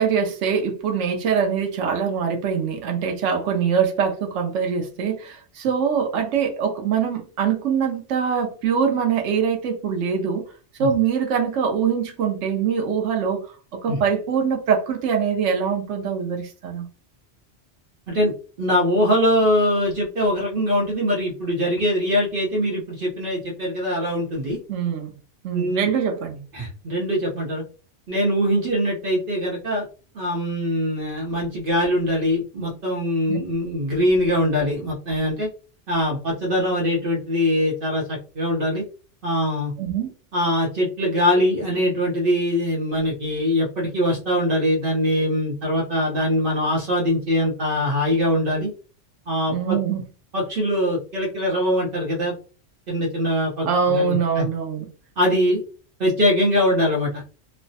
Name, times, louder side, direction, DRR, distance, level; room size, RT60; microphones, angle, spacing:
voice 1, 0.0-10.5 10.8-16.9 24.7-25.1 25.4-26.4 33.3-33.4 39.8-40.1 49.5-50.0 53.6-54.9, right 7 dB, 85° right, 3 dB, 0.9 m, -23 dB
voice 2, 18.6-24.6 25.5-25.9 26.5-27.6 28.1-29.9 30.1-35.5 35.9-38.8 39.2-39.7 40.3-48.7 49.3-49.8 50.3-52.3 52.9-54.5 55.2-55.6 56.0-57.2, equal, 55° right, -3 dB, 0.8 m, -22 dB
3.1 x 2.1 x 2.6 m, 0.36 s
omnidirectional pair, 1.2 m